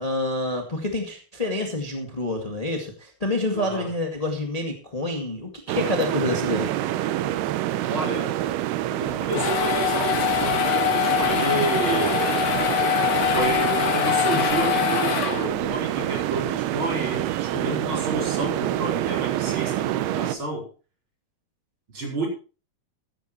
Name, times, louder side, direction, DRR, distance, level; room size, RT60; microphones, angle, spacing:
voice 1, 0.0-6.7, left 2 dB, 25° left, 2 dB, 0.8 m, -27 dB
voice 2, 3.5-3.9 7.9-8.4 9.0-12.3 13.3-20.7 21.9-22.3, right 2 dB, 30° right, -1 dB, 5.3 m, -30 dB
sound 1, 5.7-20.4, right 13 dB, 90° right, 2.9 m, -27 dB
sound 2, 9.1-15.8, left 10 dB, 75° left, 3.6 m, -24 dB
14.5 x 14.5 x 3.1 m, 0.35 s
omnidirectional pair, 4.4 m